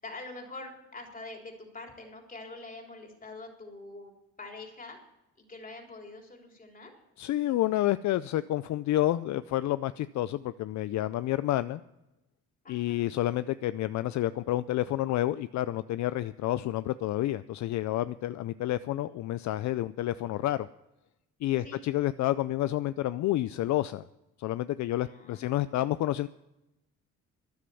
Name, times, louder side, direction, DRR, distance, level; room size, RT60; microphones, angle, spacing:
voice 1, 0.0-4.1 4.4-5.0 5.4-6.9 12.6-13.0 21.6-21.8 25.0-25.9, left 3 dB, 30° left, 2 dB, 3.6 m, -45 dB
voice 2, 7.2-11.8 12.7-20.7 21.4-24.0 24.4-26.3, left 14 dB, 65° left, 15 dB, 0.5 m, -29 dB
13.0 x 10.0 x 7.0 m, 0.91 s
cardioid pair, 90°, 30 cm